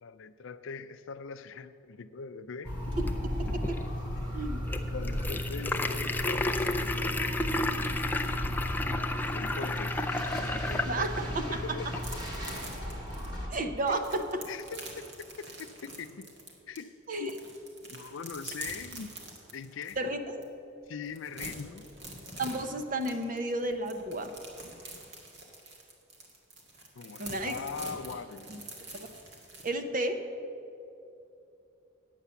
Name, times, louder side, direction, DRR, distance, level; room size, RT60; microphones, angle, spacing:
voice 1, 0.0-2.7 4.9-7.2 9.3-10.0 10.7-11.9 13.9-14.0 14.5-15.0 15.4-16.3 16.7-17.3 17.9-19.1 19.5-20.0 20.9-21.9 26.9-28.5, left 5 dB, 70° left, 0.4 m, -41 dB
sound 1, 2.6-13.5, equal, 20° right, 1.9 m, -37 dB
sound 2, 2.7-12.2, left 2 dB, 10° left, 0.4 m, -33 dB
voice 2, 3.4-3.8 4.3-4.6 10.9-11.6 13.5-14.4 17.1-17.3 20.0-20.4 22.4-24.3 27.2-27.5 28.9-29.1 29.6-30.2, right 2 dB, 40° right, 0.7 m, -32 dB
sound 3, 12.0-16.8 17.1-20.0 20.4-20.5 20.8-29.7, right 2 dB, 60° right, 1.9 m, -45 dB
9.0 x 8.5 x 6.9 m
head